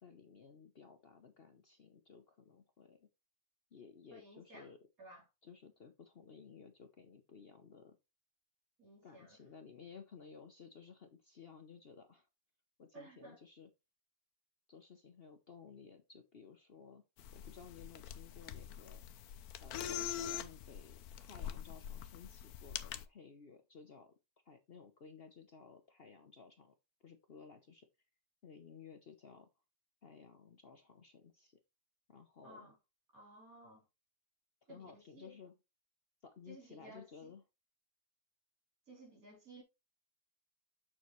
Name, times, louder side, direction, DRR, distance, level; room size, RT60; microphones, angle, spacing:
voice 1, 0.0-3.1 3.7-4.8 5.4-8.0 9.0-12.3 12.8-13.7 14.7-17.0 17.3-19.0 19.6-24.1 24.4-26.7 27.0-27.9 28.4-29.5 30.0-31.6 32.1-32.7 34.6-35.5 36.2-37.4, left 6 dB, 45° left, 0.9 m, -56 dB
voice 2, 4.1-4.7 5.0-5.2 8.8-9.4 12.9-13.4 20.1-20.2 32.4-32.8 33.1-33.9 34.7-35.4 36.5-37.3 38.9-39.6, right 1 dB, 60° right, 4.0 m, -56 dB
sound 1, 17.2-23.1, left 10 dB, 75° left, 1.2 m, -44 dB
7.2 x 6.9 x 3.1 m
omnidirectional pair, 1.7 m